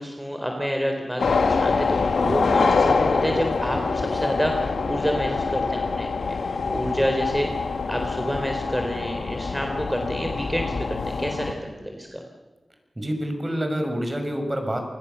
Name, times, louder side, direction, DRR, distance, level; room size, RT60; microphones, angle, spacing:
voice 1, 0.0-12.2, equal, 5° right, 3 dB, 4.0 m, -28 dB
sound 1, 1.2-11.5, left 4 dB, 85° left, 1.6 m, -25 dB
voice 2, 13.0-14.8, equal, 25° right, 5 dB, 6.2 m, -27 dB
29.0 x 20.5 x 7.0 m, 1.1 s
cardioid pair, 45°, 0 cm